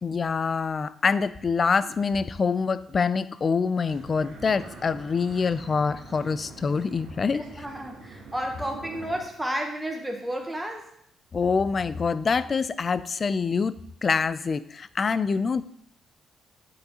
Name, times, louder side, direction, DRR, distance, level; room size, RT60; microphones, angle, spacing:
voice 1, 0.0-7.5 11.3-13.8 14.0-15.6, left 5 dB, 40° left, 16 dB, 0.3 m, -25 dB
sound 1, 3.9-9.2, right 3 dB, 85° right, 1.7 m, -45 dB
voice 2, 7.3-10.8, right 1 dB, 5° right, 2 dB, 1.0 m, -32 dB
8.3 x 5.5 x 2.9 m, 0.70 s
cardioid pair, 90°, 0 cm